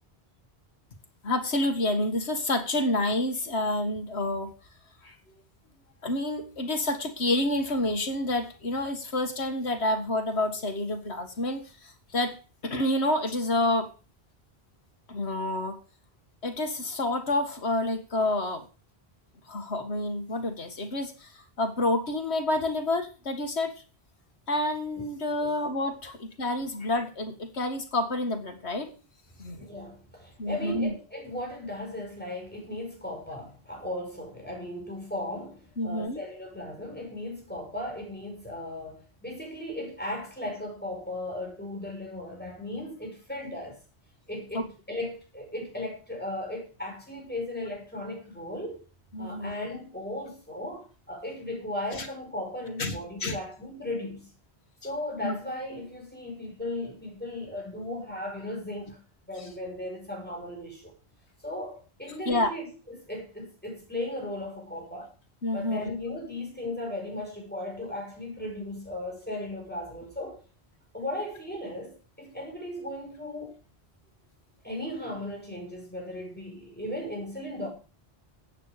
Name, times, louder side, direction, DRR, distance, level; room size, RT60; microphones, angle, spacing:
voice 1, 1.2-4.5 5.0-5.1 6.0-12.3 12.6-13.9 15.1-15.8 16.4-18.6 19.5-21.3 21.6-23.7 24.5-28.9 29.4-29.7 30.4-30.9 35.8-36.2 44.5-44.6 49.1-49.5 52.0-52.1 52.8-53.0 53.2-53.4 55.2-55.4 62.3-62.5 65.4-65.9, left 1 dB, 85° left, 2.2 m, -28 dB
voice 2, 29.6-43.8 44.3-48.8 49.2-54.3 54.8-59.0 59.3-60.9 61.4-65.1 65.5-70.4 70.9-73.6 74.6-77.7, left 1 dB, 10° left, 5.4 m, -36 dB
14.5 x 8.9 x 5.0 m
omnidirectional pair, 1.1 m